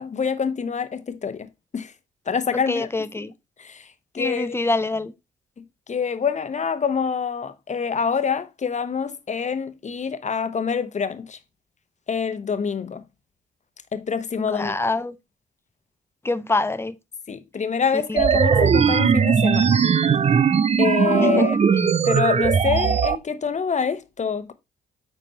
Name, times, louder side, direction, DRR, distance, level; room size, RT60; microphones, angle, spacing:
voice 1, 0.0-1.5 1.7-1.9 2.3-2.9 3.2-3.3 3.6-3.9 4.1-4.6 5.6-11.4 12.1-13.0 13.9-14.8 17.3-19.8 20.8-24.5, left 6 dB, 40° left, 1.1 m, -26 dB
voice 2, 2.7-3.3 4.2-5.1 14.4-15.1 16.2-16.9 18.1-18.2 18.5-18.7 21.4-21.5, left 2 dB, 15° left, 0.8 m, -25 dB
sound 1, 18.2-23.2, right 6 dB, 35° right, 0.6 m, -19 dB
9.1 x 4.2 x 4.3 m
hypercardioid pair, 40°, 18 cm